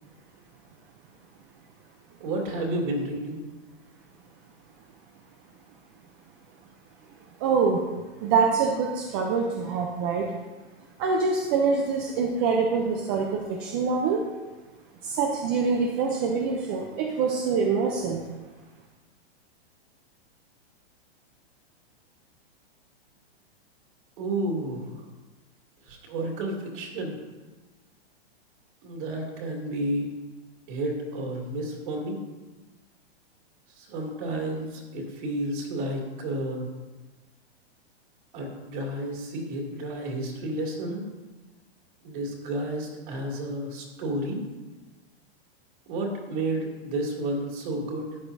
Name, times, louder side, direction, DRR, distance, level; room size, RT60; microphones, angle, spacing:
voice 1, 2.2-3.4 24.2-25.0 25.8-27.2 28.8-30.1 30.7-32.2 33.8-36.7 38.3-41.0 42.0-44.4 45.9-48.2, right 1 dB, 50° right, -1 dB, 2.6 m, -31 dB
voice 2, 7.4-7.9 8.2-10.3 11.0-14.2 15.0-18.2, right 5 dB, 25° right, 1 dB, 0.5 m, -25 dB
12.5 x 8.9 x 2.7 m, 1.2 s
hypercardioid pair, 160°, 32 cm